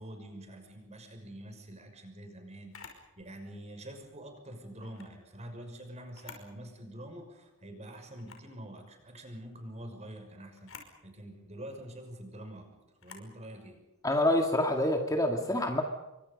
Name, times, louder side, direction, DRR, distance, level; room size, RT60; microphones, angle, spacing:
voice 1, 0.0-13.8, right 1 dB, 30° right, 5 dB, 6.0 m, -46 dB
Camera, 2.7-3.0 4.8-5.1 6.0-6.5 7.0-7.1 8.1-8.5 10.5-10.9 13.0-13.3, left 5 dB, 65° left, 5.5 m, -50 dB
voice 2, 14.0-15.8, left 1 dB, 15° left, 3 dB, 2.0 m, -27 dB
29.0 x 24.5 x 5.3 m, 1.0 s
head